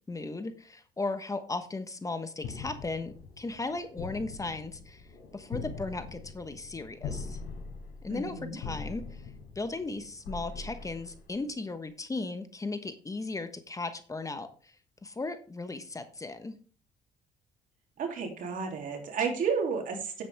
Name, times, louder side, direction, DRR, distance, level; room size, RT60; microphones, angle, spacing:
voice 1, 0.1-5.1 5.3-7.4 8.0-14.8 15.0-16.6, left 3 dB, 20° left, 9 dB, 1.2 m, -36 dB
sound 1, 2.4-11.7, left 4 dB, 90° left, 4.3 m, -42 dB
voice 2, 8.1-8.6 18.0-20.2, right 5 dB, 60° right, 3 dB, 3.0 m, -32 dB
9.5 x 8.6 x 3.5 m, 0.39 s
cardioid pair, 80°, 15 cm